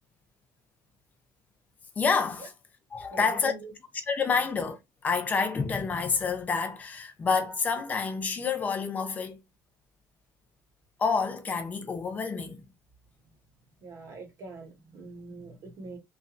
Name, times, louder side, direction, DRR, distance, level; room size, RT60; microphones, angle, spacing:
voice 1, 2.0-2.5 2.9-3.5 4.1-4.8 5.0-9.4 11.0-12.7, left 5 dB, 20° left, 0.5 m, -28 dB
voice 2, 3.1-3.7 4.4-4.5 13.8-16.0, right 3 dB, 45° right, 1.2 m, -44 dB
3.0 x 2.5 x 2.4 m
cardioid pair, 170°, 8 cm